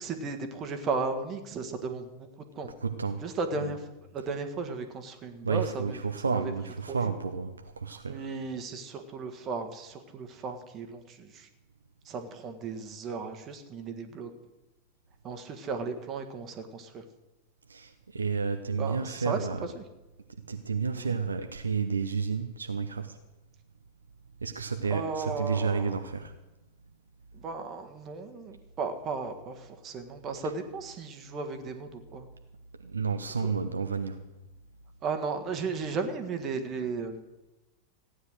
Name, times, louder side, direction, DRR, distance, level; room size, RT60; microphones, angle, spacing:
voice 1, 0.0-2.3 2.5-2.7 3.2-3.9 4.1-6.0 6.3-6.5 6.9-7.2 7.9-11.5 12.0-14.3 15.2-17.0 18.8-19.4 19.7-19.8 20.9-21.1 24.9-26.0 27.3-32.3 33.4-33.5 35.0-37.2, right 4 dB, 30° right, 6 dB, 1.6 m, -35 dB
voice 2, 2.8-3.2 3.6-3.7 5.4-8.3 17.7-19.6 20.5-23.2 24.4-26.3 32.8-34.3, right 5 dB, 75° right, 7 dB, 0.8 m, -31 dB
15.5 x 9.7 x 6.4 m, 1.0 s
figure-of-eight pair, 90°, 0 cm